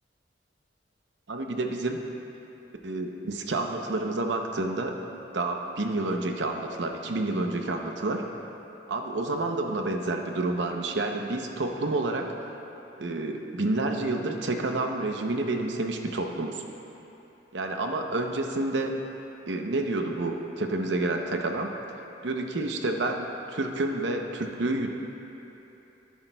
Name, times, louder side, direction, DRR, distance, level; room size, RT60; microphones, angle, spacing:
voice 1, 1.3-2.0 2.8-5.0 5.3-8.2 8.9-12.3 13.0-16.6 17.5-19.0 19.5-21.7 22.2-24.9, right 2 dB, 75° right, 3 dB, 0.7 m, -29 dB
13.5 x 10.5 x 2.3 m, 3.0 s
head